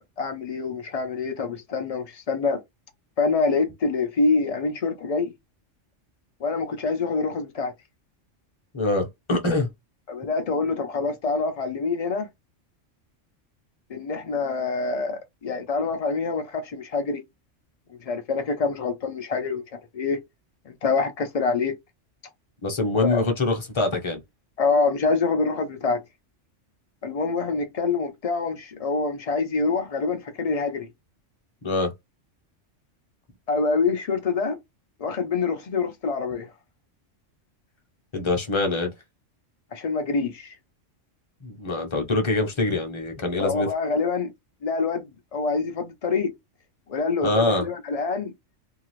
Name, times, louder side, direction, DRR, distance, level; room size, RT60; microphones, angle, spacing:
voice 1, 0.0-2.6 3.2-5.3 6.4-7.7 10.1-12.3 13.9-17.2 18.1-20.2 20.7-21.7 23.0-23.2 24.6-26.0 27.0-30.9 33.5-34.6 35.0-36.5 39.7-40.5 43.4-44.3 44.6-46.3 46.9-48.3, left 4 dB, 80° left, 0.3 m, -26 dB
voice 2, 8.7-9.7 22.6-24.2 31.6-31.9 38.1-38.9 41.4-43.7 47.2-47.7, left 2 dB, 30° left, 0.6 m, -24 dB
2.8 x 2.4 x 3.0 m
omnidirectional pair, 1.3 m